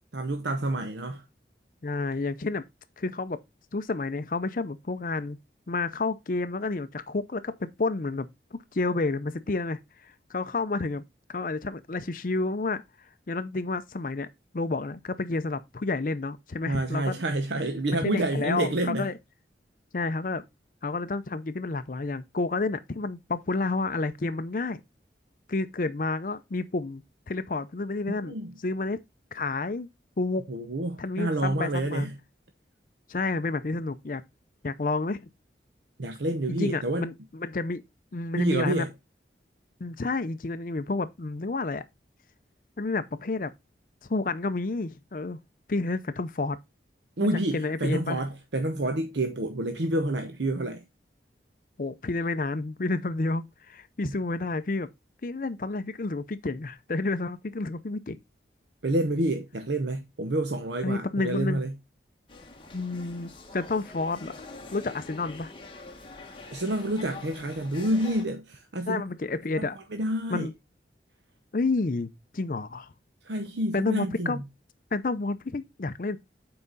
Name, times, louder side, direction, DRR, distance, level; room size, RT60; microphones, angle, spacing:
voice 1, 0.1-1.2 16.7-19.1 28.2-28.5 30.5-32.1 36.0-37.1 38.4-38.9 47.2-50.8 54.0-54.1 58.8-61.7 66.5-69.0 69.6-70.5 73.2-74.4, right 1 dB, 80° right, 0.8 m, -28 dB
voice 2, 1.8-2.6 3.0-3.4 3.7-5.4 5.7-8.3 8.7-11.0 11.3-12.8 13.3-14.3 14.5-17.1 18.0-19.1 19.9-20.4 20.8-24.8 25.5-28.4 28.6-29.0 29.3-29.9 30.2-30.5 31.0-32.1 33.1-34.2 34.6-35.3 36.5-37.8 38.1-38.9 39.8-41.8 42.8-43.5 44.1-45.4 45.7-46.6 47.2-48.2 51.8-54.9 55.2-58.2 60.8-61.6 62.7-64.3 64.7-65.5 68.9-69.8 70.3-70.5 71.5-72.9 73.7-74.4 74.9-76.2, left 3 dB, 50° left, 0.5 m, -30 dB
sound 1, 62.3-68.3, left 2 dB, 30° left, 1.4 m, -45 dB
7.8 x 4.8 x 3.9 m
head